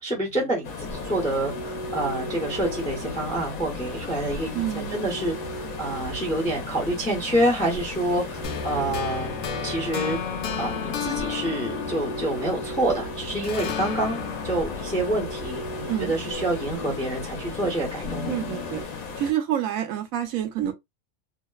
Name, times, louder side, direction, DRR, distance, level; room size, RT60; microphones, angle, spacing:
voice 1, 0.0-9.3 9.6-10.2 10.6-18.4, right 1 dB, 10° left, 0.5 m, -27 dB
sound 1, 0.6-19.3, left 4 dB, 90° left, 1.2 m, -36 dB
sound 2, 0.8-18.8, right 1 dB, 50° left, 1.2 m, -38 dB
voice 2, 4.5-5.0 15.9-16.1 18.3-18.8 19.2-20.7, right 11 dB, 75° right, 1.0 m, -28 dB
sound 3, 8.4-13.0 13.4-16.5, left 7 dB, 65° left, 0.7 m, -33 dB
2.9 x 2.0 x 2.2 m
omnidirectional pair, 1.4 m